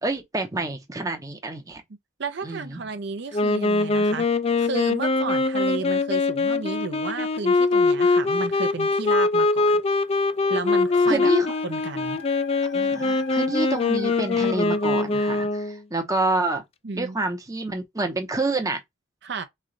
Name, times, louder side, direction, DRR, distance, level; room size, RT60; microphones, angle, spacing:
voice 1, 0.0-1.8 2.4-2.8 11.1-11.5 12.7-16.6 16.9-18.8, right 2 dB, 15° right, 0.7 m, -27 dB
voice 2, 2.2-4.3 4.6-9.8 10.5-11.3 11.6-12.2 16.8-17.2 19.2-19.4, right 4 dB, 55° right, 0.5 m, -32 dB
Wind instrument woodwind instrument, 3.3-15.8, left 3 dB, 30° left, 0.3 m, -22 dB
Dog, 10.2-15.3, left 3 dB, 65° left, 0.7 m, -41 dB
3.7 x 3.2 x 3.8 m
head